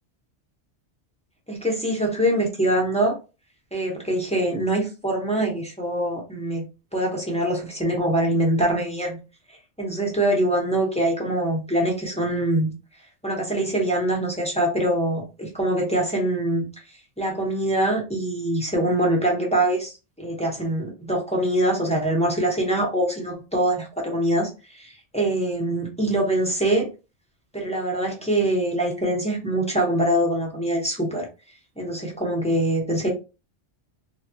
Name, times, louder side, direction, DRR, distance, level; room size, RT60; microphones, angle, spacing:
voice 1, 1.5-3.1 3.7-6.7 6.9-9.2 9.5-12.7 13.2-16.7 17.2-26.9 27.5-31.3 31.8-33.1, right 1 dB, 5° left, 0.8 m, -24 dB
3.3 x 2.3 x 2.6 m
omnidirectional pair, 1.2 m